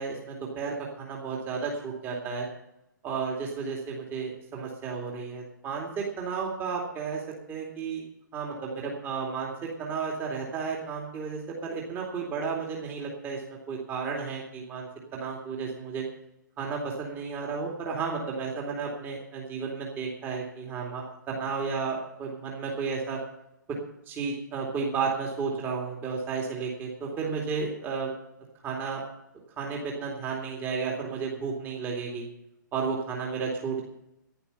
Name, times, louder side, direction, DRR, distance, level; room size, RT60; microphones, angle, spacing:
voice 1, 0.0-2.5 3.0-7.2 7.5-8.0 8.3-16.0 16.6-23.2 24.1-28.1 28.6-29.0 29.6-32.3 32.7-33.8, right 5 dB, 20° right, -1 dB, 2.5 m, -33 dB
11.5 x 11.0 x 6.9 m, 0.86 s
figure-of-eight pair, 120°, 11 cm